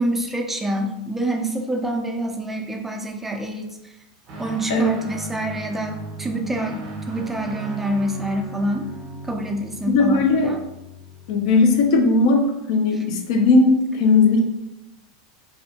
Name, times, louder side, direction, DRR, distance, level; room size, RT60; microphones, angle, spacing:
voice 1, 0.0-3.7 4.4-6.8 7.1-8.9 9.3-10.6, right 1 dB, 10° right, 2 dB, 0.3 m, -26 dB
Guitar, 4.3-11.9, right 2 dB, 45° right, 0.6 m, -36 dB
voice 2, 9.9-10.5 11.3-12.4 12.7-14.4, left 3 dB, 70° left, 3 dB, 0.5 m, -17 dB
2.5 x 2.0 x 2.7 m, 0.91 s
supercardioid pair, 125°, 3 cm